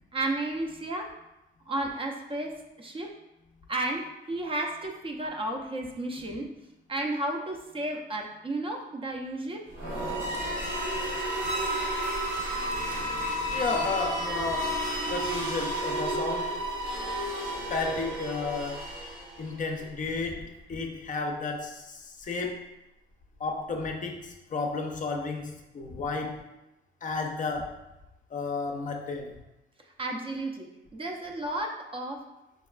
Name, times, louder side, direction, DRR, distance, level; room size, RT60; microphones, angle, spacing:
voice 1, 0.1-1.1 1.7-3.1 3.7-6.5 6.9-9.6 30.0-32.2, right 2 dB, 25° right, 2 dB, 0.4 m, -33 dB
sound 1, 9.7-19.6, right 1 dB, 85° right, 1.2 m, -32 dB
sound 2, 10.1-15.2, right 1 dB, 60° right, 0.9 m, -43 dB
voice 2, 13.5-14.7 15.1-16.5 17.7-18.8 19.4-22.6 23.4-26.4 27.0-27.8 28.3-29.3, left 3 dB, 40° left, 2 dB, 0.5 m, -32 dB
4.6 x 2.2 x 2.2 m, 0.94 s
cardioid pair, 90°, 20 cm